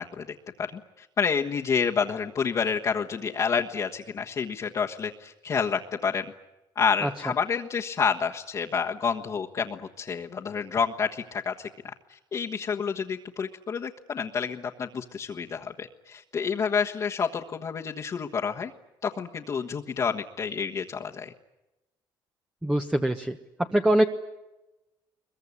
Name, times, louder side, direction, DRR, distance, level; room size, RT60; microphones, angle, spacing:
voice 1, 0.0-6.3 6.7-18.7 19.0-21.3, left 6 dB, 40° left, -1 dB, 1.4 m, -29 dB
voice 2, 22.6-23.4 23.7-24.0, right 1 dB, 10° right, 5 dB, 1.1 m, -23 dB
22.5 x 22.5 x 9.7 m, 1.0 s
cardioid pair, 110°, 8 cm